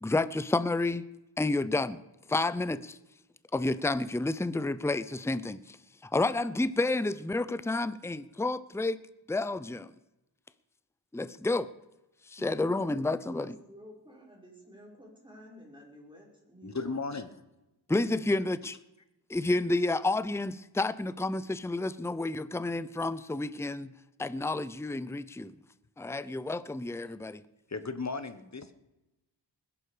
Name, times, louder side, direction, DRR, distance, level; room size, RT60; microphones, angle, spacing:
voice 1, 0.0-1.0 1.4-2.0 2.3-3.0 3.5-5.8 6.0-9.0 9.3-9.9 11.1-11.7 12.3-13.6 17.9-18.8 19.3-23.9 24.2-25.5 26.0-27.4, left 2 dB, 5° left, 0.6 m, -30 dB
voice 2, 12.4-17.0, equal, 10° right, 5.3 m, -51 dB
voice 3, 16.6-17.4 27.7-28.7, left 4 dB, 35° left, 1.3 m, -35 dB
20.5 x 11.0 x 5.0 m
wide cardioid pair, 60°, 45 cm